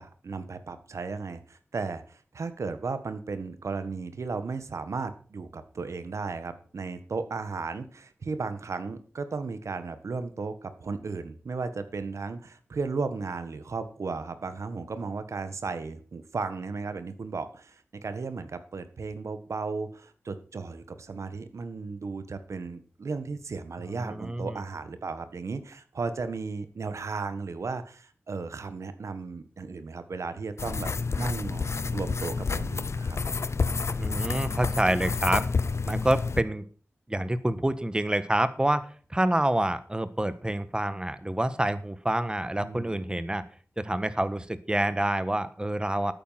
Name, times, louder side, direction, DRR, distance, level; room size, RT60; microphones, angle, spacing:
voice 1, 0.0-30.9 31.2-33.2 42.6-43.0, right 4 dB, 85° right, 11 dB, 1.6 m, -35 dB
voice 2, 23.9-24.6 34.0-35.5 35.8-36.6 37.1-43.4 43.8-46.1, right 1 dB, 20° right, 13 dB, 1.4 m, -27 dB
sound 1, 30.6-36.4, left 4 dB, 70° left, 0.8 m, -29 dB
12.5 x 9.5 x 5.9 m, 0.42 s
wide cardioid pair, 75°, 5 cm